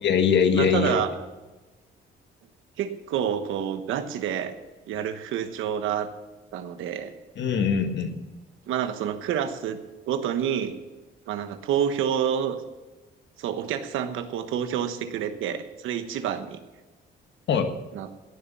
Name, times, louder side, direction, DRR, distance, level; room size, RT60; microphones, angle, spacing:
voice 1, 0.0-1.0 7.4-8.2 17.5-17.7, left 6 dB, 65° left, 7 dB, 1.6 m, -22 dB
voice 2, 0.5-1.1 2.8-4.5 4.9-6.1 6.5-7.1 8.7-9.8 10.1-10.7 11.3-12.6 13.4-16.6 17.9-18.1, right 9 dB, 85° right, 9 dB, 1.2 m, -28 dB
17.5 x 7.1 x 6.8 m, 1.2 s
cardioid pair, 90°, 20 cm